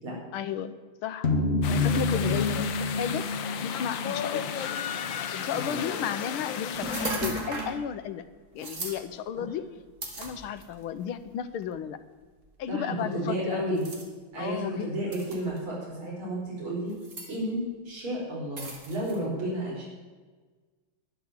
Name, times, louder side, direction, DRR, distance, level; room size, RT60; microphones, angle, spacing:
voice 1, 0.3-1.3 1.7-3.2 3.6-4.5 5.3-8.2 8.5-9.6 10.2-12.0 12.6-13.9 14.4-15.0, left 8 dB, 90° left, 12 dB, 1.7 m, -33 dB
sound 1, 1.2-5.6, left 3 dB, 35° left, 1.2 m, -29 dB
sound 2, 1.6-7.1, left 8 dB, 70° left, 1.6 m, -34 dB
sound 3, 6.7-7.8 8.6-9.0 10.0-10.8 11.6-11.7 13.8-14.0 15.1-15.6 16.9-17.3 18.6-19.2, right 2 dB, 40° right, 2.3 m, -35 dB
voice 2, 12.7-13.8 14.3-16.9 17.3-19.9, right 1 dB, 75° right, -3 dB, 5.4 m, -32 dB
11.5 x 10.5 x 7.4 m, 1.4 s
omnidirectional pair, 2.3 m